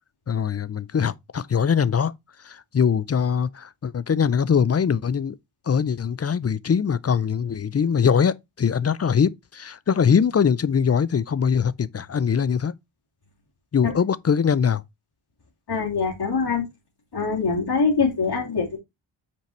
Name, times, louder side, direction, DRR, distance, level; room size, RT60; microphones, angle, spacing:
voice 1, 0.3-2.1 2.4-5.4 5.7-12.7 13.7-14.8, left 7 dB, 30° left, 0.5 m, -22 dB
voice 2, 15.7-16.6 17.1-18.8, left 4 dB, 55° left, 3.0 m, -23 dB
5.8 x 4.6 x 4.3 m
cardioid pair, 70°, 49 cm